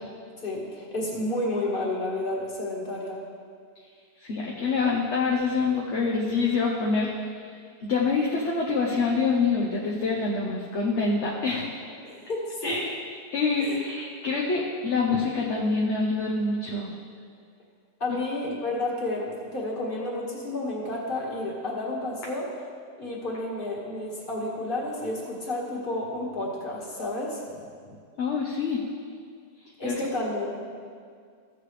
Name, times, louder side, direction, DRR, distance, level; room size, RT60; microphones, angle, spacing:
voice 1, 0.4-3.2 12.0-12.8 13.6-13.8 14.4-14.6 18.0-22.5 23.0-27.4 29.8-30.7, left 1 dB, 35° left, -4 dB, 1.9 m, -31 dB
voice 2, 4.2-7.5 7.8-11.8 12.6-12.9 13.3-16.9 28.2-28.8 29.8-30.1, left 4 dB, 50° left, -3 dB, 1.1 m, -26 dB
15.0 x 7.6 x 3.3 m, 2.1 s
omnidirectional pair, 1.7 m